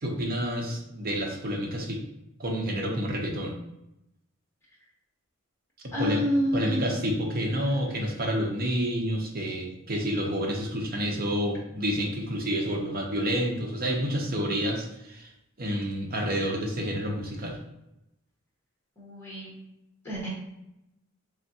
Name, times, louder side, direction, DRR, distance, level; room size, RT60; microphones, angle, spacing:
voice 1, 0.0-2.0 2.4-3.6 6.0-6.3 6.5-15.3 15.6-17.6, equal, 45° right, 1 dB, 0.7 m, -29 dB
voice 2, 5.9-7.4 19.0-19.5 20.0-20.3, equal, 15° left, -5 dB, 1.4 m, -29 dB
3.5 x 3.5 x 2.8 m, 0.86 s
head